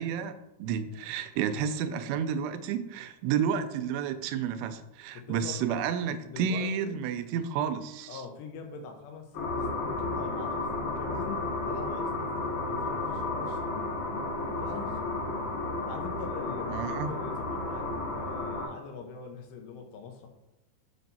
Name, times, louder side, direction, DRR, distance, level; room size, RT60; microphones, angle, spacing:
voice 1, 0.0-8.2 16.7-17.1, right 7 dB, 85° right, 10 dB, 2.6 m, -31 dB
voice 2, 5.1-7.0 8.1-13.7 14.6-15.1 15.9-20.3, left 5 dB, 85° left, 4 dB, 3.1 m, -43 dB
sound 1, 9.3-18.7, left 2 dB, 55° left, 2.5 m, -32 dB
7.2 x 4.3 x 4.1 m, 0.92 s
omnidirectional pair, 4.8 m